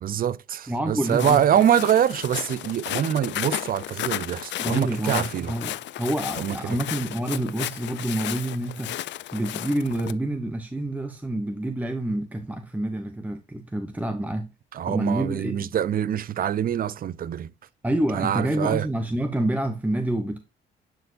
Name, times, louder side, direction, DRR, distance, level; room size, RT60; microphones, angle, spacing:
voice 1, 0.0-5.5 6.4-6.8 14.7-17.5 18.1-18.9, right 10 dB, 45° right, 0.5 m, -24 dB
voice 2, 0.7-1.4 4.6-8.9 9.3-14.5 14.9-15.7 17.8-20.4, right 1 dB, 10° right, 0.7 m, -28 dB
Walk footsteps, 1.0-10.1, left 13 dB, 65° left, 0.4 m, -33 dB
10.5 x 4.4 x 2.6 m
cardioid pair, 90°, 20 cm